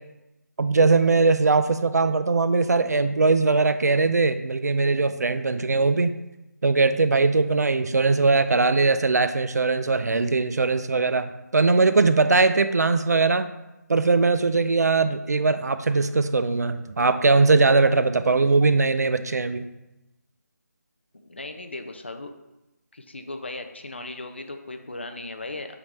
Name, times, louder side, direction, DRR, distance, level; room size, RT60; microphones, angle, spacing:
voice 1, 0.6-6.1 6.6-13.5 13.9-19.7, right 3 dB, 65° right, 11 dB, 0.4 m, -20 dB
voice 2, 21.1-22.3 22.9-25.8, left 2 dB, 40° left, 7 dB, 0.5 m, -37 dB
8.1 x 3.7 x 3.2 m, 0.96 s
figure-of-eight pair, 180°, 9 cm